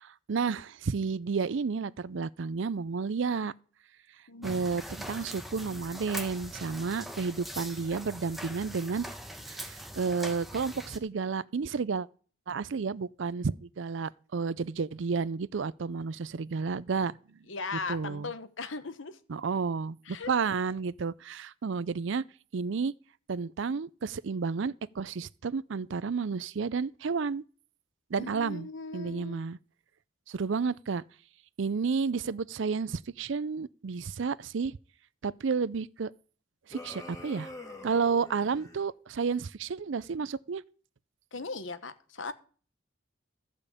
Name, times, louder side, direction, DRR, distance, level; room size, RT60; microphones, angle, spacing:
voice 1, 0.0-3.5 4.4-9.0 9.5-12.1 12.5-17.2 17.7-18.3 19.3-22.2 22.5-22.9 23.3-27.4 28.1-28.7 28.9-29.6 30.3-31.0 31.6-34.8 35.2-36.1 36.7-37.5 37.8-40.6, right 5 dB, 65° right, 0.5 m, -31 dB
voice 2, 4.3-4.7 17.5-19.2 20.1-20.3 28.2-29.4 41.3-42.3, left 4 dB, 70° left, 1.1 m, -38 dB
sound 1, 4.4-11.0, equal, ahead, 1.0 m, -42 dB
sound 2, 36.7-38.8, left 1 dB, 15° left, 2.0 m, -45 dB
14.0 x 5.2 x 8.3 m
head